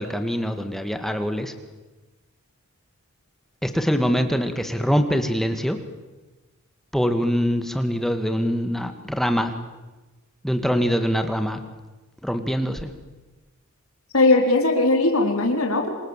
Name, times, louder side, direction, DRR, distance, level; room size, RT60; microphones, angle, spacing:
voice 1, 0.0-1.5 3.6-5.8 6.9-9.5 10.4-11.6 12.2-12.9, equal, ahead, 7 dB, 1.9 m, -23 dB
voice 2, 14.1-15.9, left 2 dB, 80° left, 3 dB, 4.1 m, -19 dB
28.0 x 26.0 x 7.5 m, 1.2 s
head